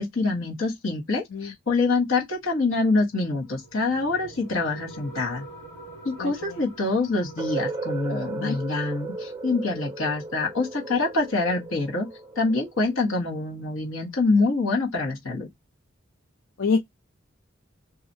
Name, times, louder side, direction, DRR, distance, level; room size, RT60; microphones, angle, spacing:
voice 1, 0.0-5.5 6.0-12.1 12.4-15.5, left 3 dB, 85° left, 1.2 m, -25 dB
sound 1, 3.1-14.1, right 3 dB, 35° left, 1.6 m, -48 dB
voice 2, 6.2-6.6 8.4-8.6 16.6-16.8, left 4 dB, 70° left, 0.4 m, -26 dB
sound 2, 7.4-13.2, right 3 dB, 15° right, 0.4 m, -36 dB
2.8 x 2.4 x 2.6 m
head